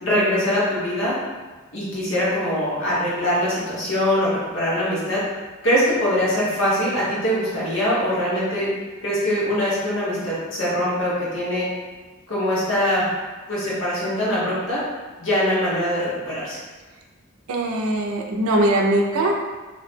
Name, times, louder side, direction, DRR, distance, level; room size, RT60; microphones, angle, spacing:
voice 1, 0.0-1.1 1.7-5.2 5.6-8.7 9.0-11.7 12.3-13.1 13.5-14.8 15.2-16.6, equal, 65° left, -8 dB, 1.0 m, -22 dB
voice 2, 17.5-19.3, right 1 dB, 80° right, 2 dB, 0.4 m, -21 dB
2.7 x 2.1 x 3.2 m, 1.3 s
head